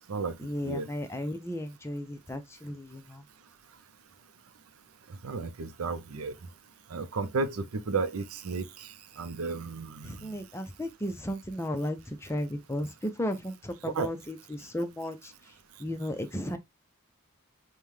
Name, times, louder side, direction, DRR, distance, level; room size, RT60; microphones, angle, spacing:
voice 1, 0.4-3.2 10.0-15.3 15.8-16.6, left 1 dB, 10° left, 0.5 m, -34 dB
voice 2, 5.2-6.3 6.9-8.9 9.2-10.4 14.0-14.1, right 4 dB, 80° right, 0.5 m, -33 dB
5.4 x 2.2 x 3.1 m
head